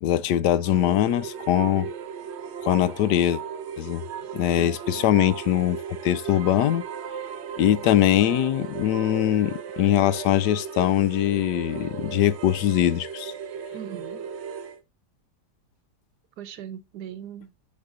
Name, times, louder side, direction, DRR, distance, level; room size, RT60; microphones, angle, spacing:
voice 1, 0.0-1.9 2.6-3.4 3.8-4.0 4.3-6.9 7.6-13.3, left 12 dB, 85° left, 1.2 m, -22 dB
sound 1, 0.6-14.8, right 7 dB, 55° right, 0.9 m, -36 dB
voice 2, 4.6-5.0 13.7-14.3 16.4-17.5, right 9 dB, 75° right, 1.4 m, -40 dB
12.5 x 4.3 x 2.5 m
omnidirectional pair, 1.8 m